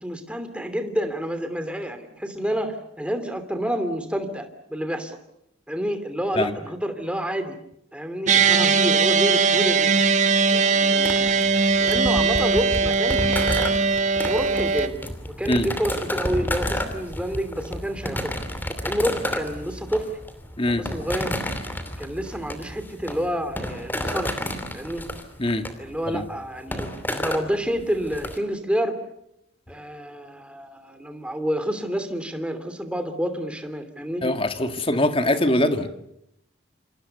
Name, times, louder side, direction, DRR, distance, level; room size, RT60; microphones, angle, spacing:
voice 1, 0.0-5.2 5.7-7.6 7.9-9.9 10.5-13.4 14.2-15.0 15.4-18.4 18.8-20.1 20.7-21.3 22.0-25.0 25.8-26.9 27.2-29.0 29.7-34.2, equal, 5° right, 8 dB, 2.9 m, -29 dB
sound 1, 8.3-14.9, right 5 dB, 35° right, 1.7 m, -20 dB
sound 2, 11.0-28.4, equal, 10° left, 2.8 m, -31 dB
voice 2, 34.2-35.9, left 1 dB, 25° left, 7 dB, 2.0 m, -22 dB
28.0 x 27.5 x 6.8 m, 0.79 s
head